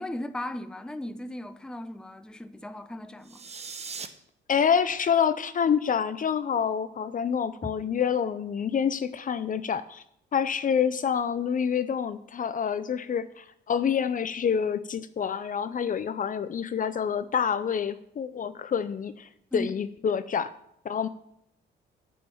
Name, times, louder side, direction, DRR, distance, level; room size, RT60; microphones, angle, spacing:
voice 1, 0.0-3.4 7.6-7.7 19.5-19.7, left 1 dB, 5° left, 0.6 m, -36 dB
sound 1, 3.2-4.1, right 5 dB, 35° right, 0.9 m, -39 dB
voice 2, 4.5-10.0 10.3-20.5 20.8-21.1, left 7 dB, 45° left, 0.5 m, -27 dB
9.4 x 5.6 x 7.0 m
cardioid pair, 90°, 20 cm